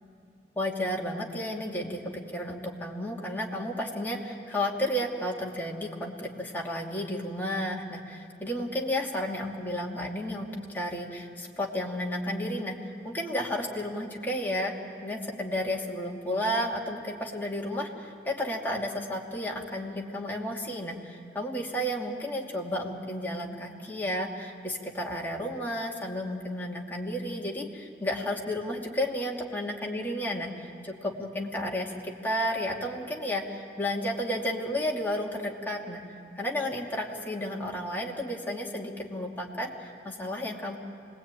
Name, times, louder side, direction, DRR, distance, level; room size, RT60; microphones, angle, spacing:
voice 1, 0.6-12.8 13.0-14.7 15.0-36.0 36.4-40.8, equal, 10° left, -3 dB, 2.7 m, -32 dB
28.0 x 20.5 x 9.1 m, 2.5 s
head